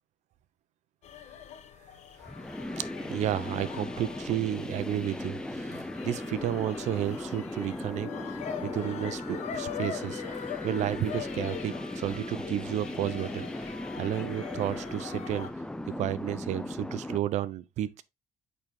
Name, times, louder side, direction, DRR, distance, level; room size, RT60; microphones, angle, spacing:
sound 1, 1.0-15.5, left 8 dB, 65° left, 1.3 m, -42 dB
sound 2, 2.2-17.2, left 1 dB, 5° left, 0.5 m, -38 dB
voice 1, 2.8-8.1 8.6-10.2 10.6-13.5 14.0-15.5 16.0-18.0, right 12 dB, 70° right, 0.7 m, -32 dB
8.8 x 4.1 x 3.6 m
cardioid pair, 85°, 12 cm